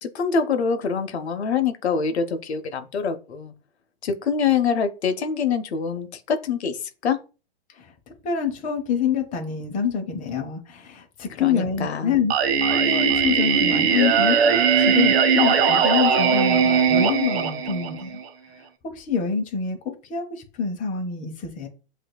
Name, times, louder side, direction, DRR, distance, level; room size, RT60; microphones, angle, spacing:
voice 1, 0.0-3.5 4.0-7.2 11.4-12.2, left 6 dB, 90° left, 0.7 m, -25 dB
voice 2, 8.2-12.3 12.6-18.2 18.8-21.7, left 6 dB, 25° left, 1.0 m, -26 dB
Singing, 12.3-18.2, right 6 dB, 70° right, 0.9 m, -19 dB
7.6 x 2.6 x 2.2 m
hypercardioid pair, 125°, 32 cm